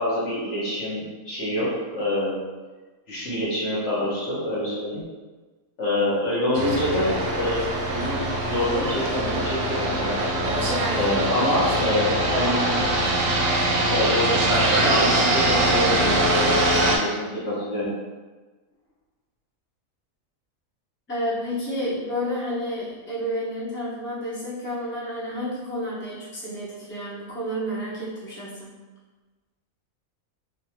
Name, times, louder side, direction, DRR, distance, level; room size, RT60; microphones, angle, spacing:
voice 1, 0.0-2.4 3.1-5.0 5.8-10.4 10.9-12.9 13.7-17.9, left 1 dB, 60° left, -8 dB, 1.2 m, -26 dB
sound 1, 6.5-17.0, right 1 dB, 70° right, 1.0 m, -23 dB
voice 2, 21.1-28.7, equal, 10° left, -10 dB, 0.8 m, -30 dB
3.4 x 2.6 x 2.7 m, 1.3 s
omnidirectional pair, 1.5 m